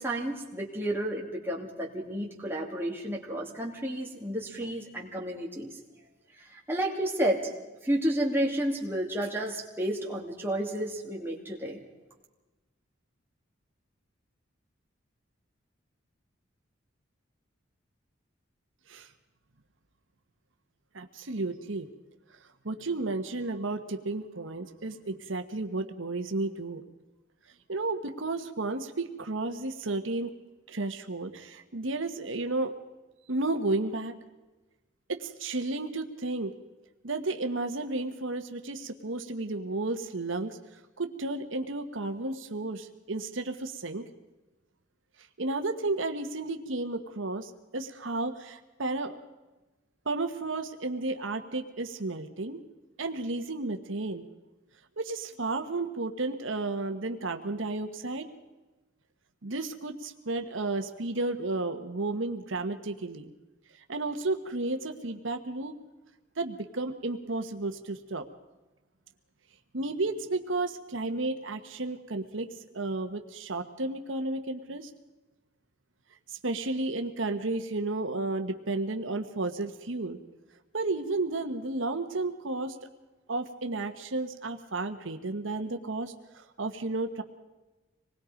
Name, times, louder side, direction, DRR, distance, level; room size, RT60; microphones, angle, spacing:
voice 1, 0.0-5.7 6.5-7.5 7.8-11.8, right 1 dB, 10° right, -2 dB, 2.8 m, -31 dB
voice 2, 20.9-21.9 22.6-26.8 27.7-30.3 30.7-32.7 33.3-34.1 35.1-36.5 37.0-40.6 41.0-44.1 45.4-49.2 50.0-52.6 53.0-54.2 55.0-58.3 59.4-63.3 63.9-65.7 66.4-68.3 69.7-72.5 72.7-74.9 76.3-80.2 80.7-82.8 83.3-87.2, right 2 dB, 80° right, 6 dB, 1.3 m, -32 dB
26.0 x 20.0 x 5.2 m, 1.1 s
head